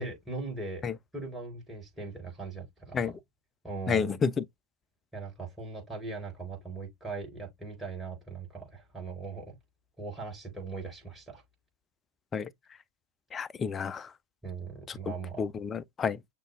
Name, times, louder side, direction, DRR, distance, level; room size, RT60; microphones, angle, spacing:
voice 1, 0.0-0.8 1.1-3.1 3.6-4.1 5.1-9.6 10.0-11.4 14.4-15.4, right 3 dB, 5° right, 4.2 m, -39 dB
voice 2, 3.9-4.4 12.3-12.5 13.3-14.1 15.4-16.2, left 6 dB, 20° left, 0.4 m, -30 dB
6.5 x 3.5 x 2.2 m
figure-of-eight pair, 90°, 0 cm